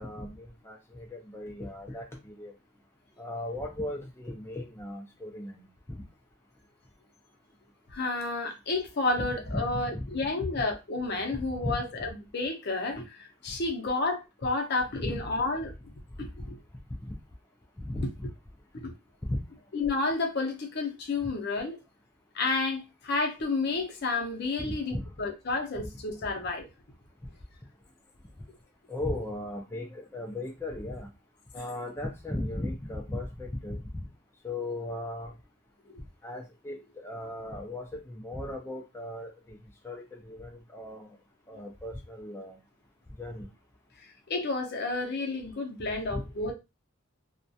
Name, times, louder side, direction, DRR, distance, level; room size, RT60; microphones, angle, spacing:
voice 1, 0.0-2.5 3.2-5.6 5.9-6.0 9.2-10.0 11.3-11.7 15.0-15.2 17.0-17.1 17.8-18.3 19.3-19.4 24.6-25.1 25.8-25.9 28.9-31.1 31.5-33.8 34.4-35.3 36.2-39.6 39.8-41.1 41.5-42.6 43.2-43.5 46.1-46.2, left 1 dB, 10° left, 0.3 m, -37 dB
voice 2, 7.9-12.1 12.3-15.7 16.2-16.6 18.7-18.9 19.7-21.8 22.3-26.7 35.9-36.0 44.3-46.5, left 3 dB, 50° left, 0.6 m, -31 dB
2.3 x 2.1 x 2.6 m
head